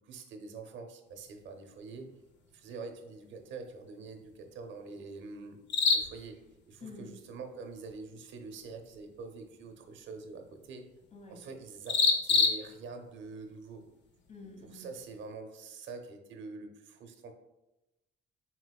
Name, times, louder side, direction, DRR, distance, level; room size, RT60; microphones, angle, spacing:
voice 1, 0.0-2.1 2.5-5.6 5.9-6.4 6.7-10.8 11.3-13.8 14.7-17.3, right 4 dB, 70° right, 4 dB, 0.7 m, -45 dB
sound 1, 1.0-15.3, left 4 dB, 65° left, 0.7 m, -36 dB
voice 2, 6.8-7.2 11.1-11.4 14.3-14.9, left 3 dB, 35° left, 0 dB, 1.2 m, -48 dB
4.3 x 4.3 x 2.3 m, 0.97 s
cardioid pair, 90°, 20 cm